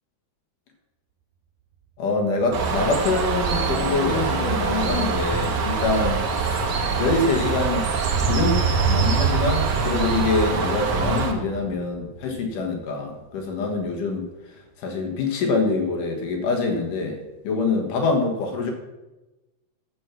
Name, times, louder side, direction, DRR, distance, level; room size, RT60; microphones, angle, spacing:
voice 1, 2.0-6.7 7.0-7.9 8.2-8.6 8.9-14.3 14.8-18.7, left 3 dB, 85° left, 2 dB, 3.2 m, -25 dB
sound 1, 2.4-2.5 2.8-13.1 13.4-13.5, right 7 dB, 85° right, 2.1 m, -29 dB
Bird, 2.5-11.3, right 4 dB, 55° right, 1.2 m, -25 dB
13.5 x 6.4 x 6.0 m, 1.1 s
omnidirectional pair, 3.6 m